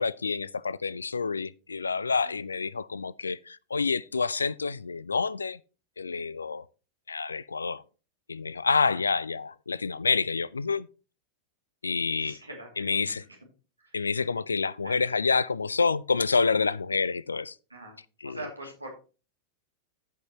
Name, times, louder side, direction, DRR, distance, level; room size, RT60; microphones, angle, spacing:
voice 1, 0.0-5.6 6.0-6.6 7.1-7.8 8.3-10.9 11.8-12.4 12.8-13.2 13.9-17.5 18.2-18.4, left 4 dB, 75° left, 0.3 m, -28 dB
voice 2, 12.2-13.2 13.8-14.3 14.8-15.0 17.7-17.9 18.2-18.9, right 2 dB, 85° right, 2.5 m, -43 dB
14.5 x 5.6 x 3.0 m
figure-of-eight pair, 90°, 0 cm